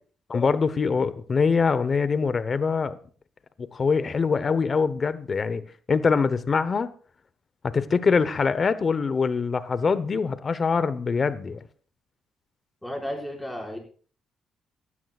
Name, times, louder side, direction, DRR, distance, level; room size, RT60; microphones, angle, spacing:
voice 1, 0.3-3.0 3.6-5.6 5.9-6.9 7.6-11.6, left 5 dB, 40° left, 1.0 m, -24 dB
voice 2, 12.8-13.8, equal, 5° left, 5.7 m, -33 dB
18.5 x 12.5 x 2.5 m
cardioid pair, 90°, 0 cm